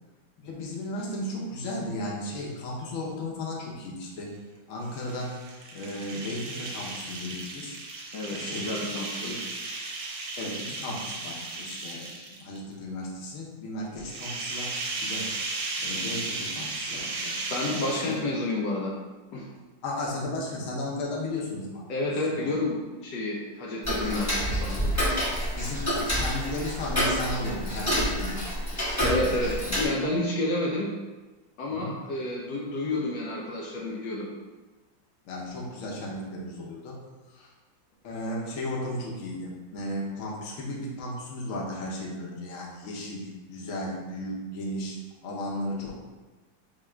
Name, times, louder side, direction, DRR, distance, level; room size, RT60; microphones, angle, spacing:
voice 1, 0.4-4.3 4.7-5.4 5.7-7.8 8.3-8.9 9.2-9.4 10.4-14.7 15.0-15.3 15.8-17.4 17.8-18.2 19.8-21.8 22.4-22.5 25.6-28.5 29.3-29.5 31.7-32.0 35.2-37.0 37.3-37.5 38.0-45.0 45.2-45.9, left 1 dB, 55° left, -3 dB, 1.0 m, -35 dB
sound 1, 4.8-12.6 14.0-18.4, right 3 dB, 70° right, 1.2 m, -35 dB
voice 2, 8.1-9.5 17.5-18.9 19.3-19.5 21.9-24.8 29.0-30.9 31.6-34.3, left 2 dB, 75° left, -3 dB, 1.2 m, -30 dB
Tick-tock, 23.8-29.8, equal, 15° left, 0.6 m, -28 dB
3.5 x 2.9 x 4.4 m, 1.2 s
omnidirectional pair, 2.1 m